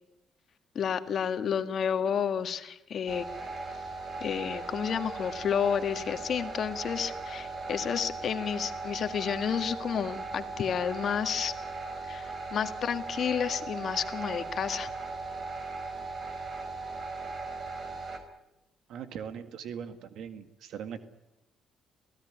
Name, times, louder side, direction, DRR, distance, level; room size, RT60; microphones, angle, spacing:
voice 1, 0.8-3.3 4.2-11.5 12.0-14.9, left 7 dB, 60° left, 9 dB, 1.7 m, -31 dB
sound 1, 3.1-18.2, right 3 dB, 40° right, 4.8 m, -38 dB
voice 2, 18.9-21.0, right 8 dB, 80° right, 11 dB, 1.8 m, -40 dB
25.0 x 16.5 x 10.0 m, 0.92 s
cardioid pair, 90°, 0 cm